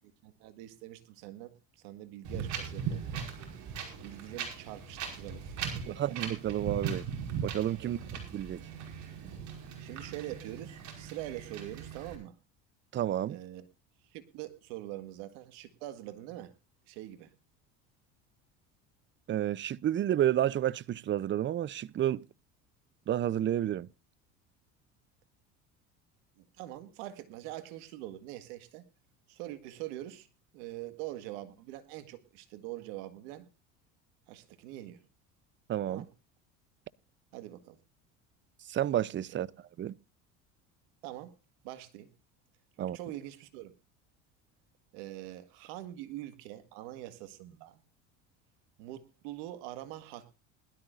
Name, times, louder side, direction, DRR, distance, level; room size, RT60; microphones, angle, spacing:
voice 1, 0.2-3.2 4.0-6.1 7.8-8.1 9.8-12.4 13.3-13.7 14.1-16.5 16.9-17.3 26.4-28.9 29.3-30.3 30.5-33.5 34.3-35.0 35.9-36.1 37.3-37.8 39.3-39.5 41.0-41.4 41.6-42.1 42.8-43.7 44.9-47.8 48.8-50.3, right 14 dB, 80° right, 1.9 m, -44 dB
Wind, 2.2-12.2, right 7 dB, 55° right, 5.1 m, -39 dB
voice 2, 6.0-7.0 7.4-8.0 8.3-8.6 12.9-13.4 19.3-22.2 23.1-23.9 35.7-36.1 38.6-39.5 39.8-40.0 42.8-43.0, right 11 dB, 35° right, 0.6 m, -30 dB
21.0 x 12.5 x 2.6 m
supercardioid pair, 90°, 34 cm